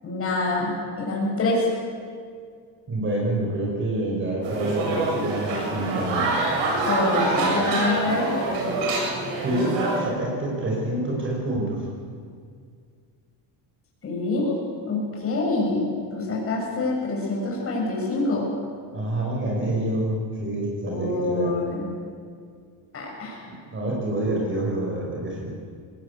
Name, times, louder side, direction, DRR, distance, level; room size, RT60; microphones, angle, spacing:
voice 1, 0.0-1.7 6.8-8.3 14.0-14.6 14.9-18.5 20.8-21.9 22.9-23.4, left 2 dB, 30° left, -3 dB, 7.4 m, -26 dB
voice 2, 2.9-6.3 9.4-11.9 18.9-21.5 23.4-25.5, right 1 dB, 25° right, -2 dB, 5.5 m, -27 dB
sound 1, 4.4-10.0, right 2 dB, 85° right, 7.7 m, -25 dB
20.5 x 19.0 x 8.4 m, 2.1 s
cardioid pair, 140°, 43 cm